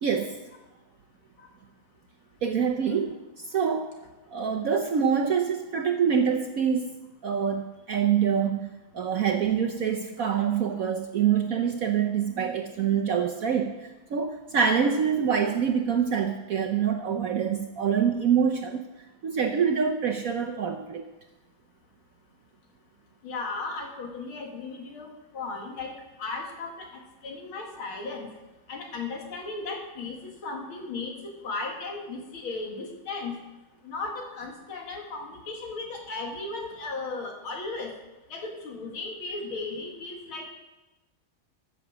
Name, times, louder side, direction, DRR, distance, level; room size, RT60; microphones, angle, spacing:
voice 1, 0.0-0.4 2.4-3.9 4.3-6.9 7.2-18.8 19.2-21.0, right 7 dB, 65° right, 3 dB, 0.8 m, -25 dB
voice 2, 23.2-28.3 28.7-33.3 33.8-37.9 38.3-40.5, left 3 dB, 85° left, 1 dB, 2.7 m, -36 dB
14.5 x 7.0 x 6.2 m, 1.1 s
omnidirectional pair, 2.2 m